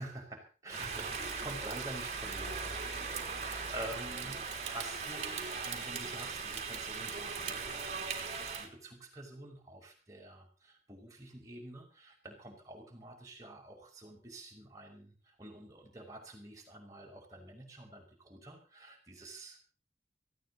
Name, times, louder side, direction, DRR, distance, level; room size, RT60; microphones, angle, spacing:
voice 1, 0.0-19.6, right 1 dB, 20° right, 0 dB, 5.4 m, -48 dB
Rain, 0.7-8.7, right 5 dB, 40° right, 3.1 m, -39 dB
18.5 x 15.5 x 4.1 m, 0.36 s
head